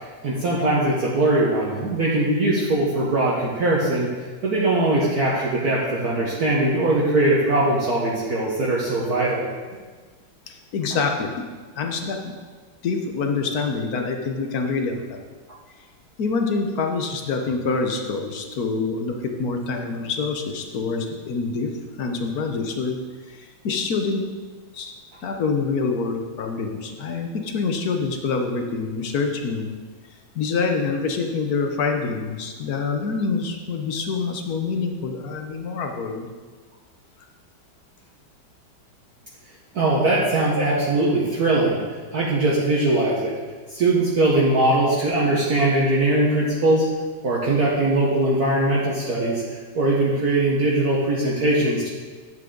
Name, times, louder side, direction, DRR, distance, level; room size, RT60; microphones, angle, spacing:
voice 1, 0.2-4.1 4.4-9.4 10.9-11.0 39.7-41.8 42.1-43.3 43.7-46.9 47.2-49.4 49.7-51.9, right 2 dB, 50° right, -6 dB, 1.7 m, -21 dB
voice 2, 10.5-11.4 11.8-12.3 12.8-15.2 16.2-21.7 22.0-23.0 23.3-24.2 24.7-24.9 25.2-29.7 30.3-36.3, left 4 dB, 55° left, 4 dB, 1.3 m, -26 dB
11.0 x 7.7 x 3.9 m, 1.4 s
omnidirectional pair, 2.2 m